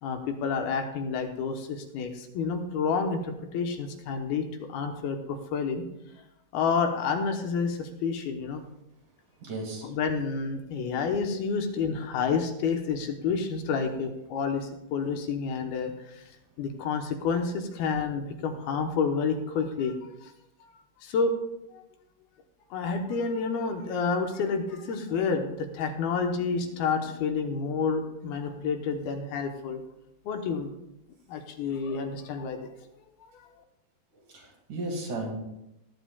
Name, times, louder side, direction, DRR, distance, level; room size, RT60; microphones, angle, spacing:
voice 1, 0.0-3.2 3.5-5.8 6.5-8.6 9.8-16.2 16.6-20.3 21.0-21.3 21.7-21.8 22.7-29.8 30.3-30.7 31.3-32.7 33.3-33.5, left 5 dB, 80° left, 4 dB, 2.8 m, -29 dB
voice 2, 9.4-9.9 34.1-35.4, right 2 dB, 55° right, -1 dB, 3.4 m, -35 dB
19.5 x 9.9 x 2.3 m, 0.86 s
omnidirectional pair, 4.5 m